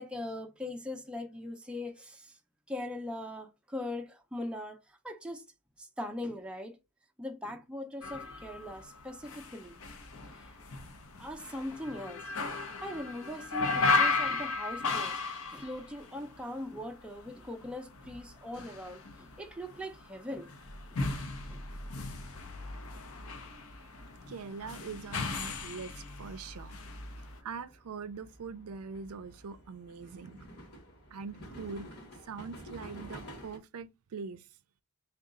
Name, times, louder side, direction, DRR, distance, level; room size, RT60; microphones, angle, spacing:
voice 1, 0.0-2.4 2.7-4.8 5.0-5.4 5.8-6.8 7.2-9.8 10.3-10.5 11.2-12.3 12.7-15.2 15.5-20.5 20.9-21.0 21.5-21.6 22.1-22.2, left 1 dB, 5° right, 0.4 m, -40 dB
sound 1, 8.0-16.9 17.2-27.4, left 3 dB, 75° left, 0.7 m, -35 dB
voice 2, 24.3-26.8 27.4-30.4 31.1-31.9 32.3-34.5, right 5 dB, 80° right, 0.4 m, -42 dB
sound 2, 26.5-33.6, equal, 50° left, 1.1 m, -50 dB
3.7 x 2.3 x 3.7 m
head